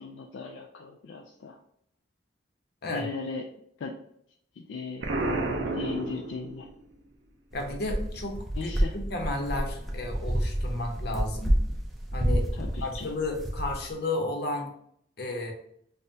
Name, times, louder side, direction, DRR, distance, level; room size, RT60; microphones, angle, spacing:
voice 1, 0.0-1.6 2.9-3.5 3.8-4.0 4.6-5.1 5.7-6.7 8.6-8.9 12.5-13.1, left 4 dB, 75° left, 3 dB, 0.3 m, -37 dB
Explosion, 5.0-6.8, right 2 dB, 70° right, 0.6 m, -30 dB
voice 2, 7.5-11.5 12.1-12.5 12.8-14.7 15.2-15.5, left 2 dB, 55° left, 3 dB, 0.7 m, -33 dB
sound 1, 7.5-13.9, equal, ahead, 0.5 m, -29 dB
5.4 x 2.2 x 2.7 m, 0.69 s
head